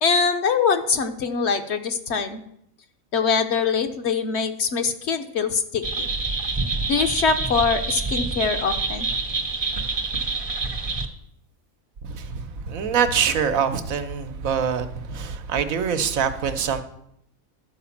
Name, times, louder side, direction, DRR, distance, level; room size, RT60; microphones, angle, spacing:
voice 1, 0.0-2.4 3.1-6.1 6.9-9.1, left 5 dB, 55° left, 8 dB, 1.0 m, -23 dB
sound 1, 5.8-11.1, right 3 dB, 25° right, 0.7 m, -27 dB
voice 2, 12.0-16.8, right 7 dB, 80° right, 8 dB, 1.2 m, -24 dB
11.5 x 5.1 x 7.1 m, 0.74 s
omnidirectional pair, 1.5 m